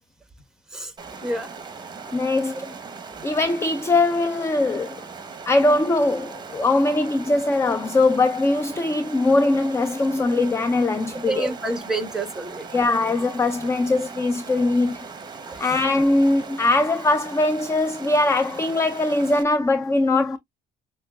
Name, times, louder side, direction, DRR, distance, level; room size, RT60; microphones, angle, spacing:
Stream, 1.0-19.4, right 5 dB, 25° right, 1.1 m, -39 dB
voice 1, 2.1-2.7 3.2-5.0 5.5-11.5 12.7-15.1 15.6-20.4, left 2 dB, 15° left, 0.5 m, -21 dB
voice 2, 11.3-12.7 15.5-15.8, right 2 dB, 5° right, 1.3 m, -28 dB
6.7 x 2.4 x 2.3 m
cardioid pair, 110°, 17 cm